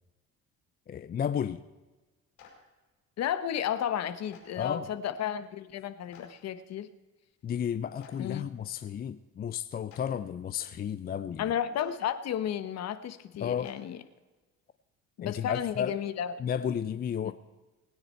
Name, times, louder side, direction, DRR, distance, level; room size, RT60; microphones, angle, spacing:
voice 1, 0.9-1.6 4.6-4.8 7.4-11.4 13.4-13.7 15.2-15.9 16.4-17.3, left 8 dB, 30° left, 0.5 m, -32 dB
Clapping, 2.4-2.5 4.3-4.4 6.1-6.2 8.0-8.1 9.9-10.0 11.7-11.8 13.6-13.7 15.5-15.6, left 10 dB, 70° left, 5.1 m, -52 dB
voice 2, 3.2-6.9 8.2-8.4 11.4-14.0 15.2-16.3 17.2-17.3, left 9 dB, 55° left, 1.1 m, -33 dB
20.0 x 9.6 x 4.5 m
cardioid pair, 110°, 32 cm